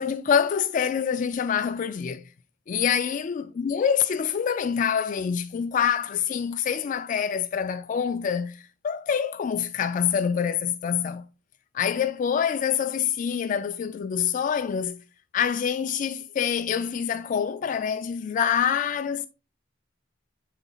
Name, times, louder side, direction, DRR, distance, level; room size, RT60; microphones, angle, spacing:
voice 1, 0.0-2.2 2.7-11.2 11.7-15.0 15.3-19.3, left 7 dB, 40° left, 0.3 m, -26 dB
11.0 x 4.0 x 2.3 m
head